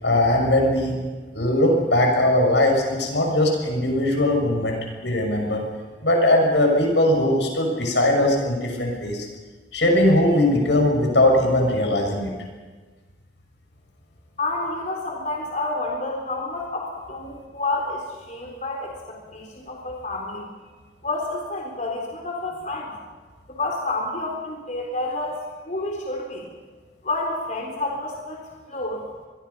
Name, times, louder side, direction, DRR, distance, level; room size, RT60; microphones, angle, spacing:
voice 1, 0.0-0.9 1.3-5.6 6.0-9.3 9.7-12.3, left 1 dB, 85° left, 2 dB, 6.5 m, -20 dB
voice 2, 14.4-20.5 21.0-22.9 23.5-25.4 25.7-26.5 27.0-28.4 28.7-29.0, left 2 dB, 45° left, 0 dB, 4.0 m, -29 dB
27.0 x 22.0 x 5.6 m, 1.4 s
head